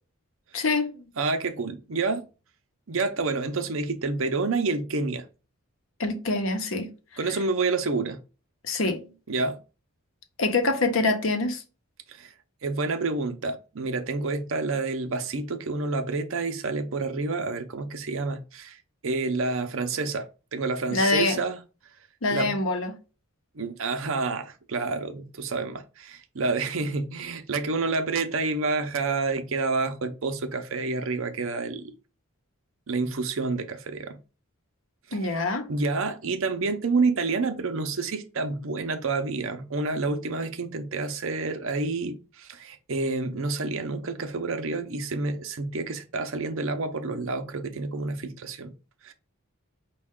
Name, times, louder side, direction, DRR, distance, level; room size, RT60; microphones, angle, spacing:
voice 1, 0.5-1.1 6.0-6.9 8.6-9.1 10.4-11.6 20.9-21.4 22.2-23.0 35.1-35.6, left 3 dB, 60° left, 0.8 m, -25 dB
voice 2, 1.2-2.2 2.9-5.2 7.2-8.2 9.3-9.6 12.1-12.3 12.6-18.8 19.0-21.6 22.3-22.6 23.6-31.9 32.9-34.2 35.1-48.7 49.0-49.1, right 3 dB, 60° right, 0.6 m, -29 dB
5.3 x 2.3 x 3.6 m
head